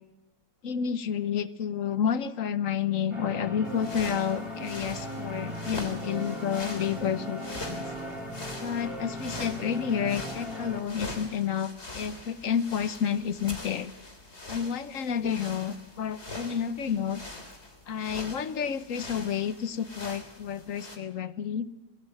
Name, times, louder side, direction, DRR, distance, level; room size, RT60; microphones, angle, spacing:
voice 1, 0.6-7.8 8.6-13.9 14.5-17.2 17.9-21.7, left 8 dB, 50° left, 13 dB, 1.2 m, -30 dB
sound 1, 3.1-10.8, equal, 15° right, 3.8 m, -38 dB
sound 2, 3.6-21.0, left 2 dB, 35° left, 3.5 m, -43 dB
25.5 x 19.0 x 7.9 m, 1.0 s
omnidirectional pair, 2.0 m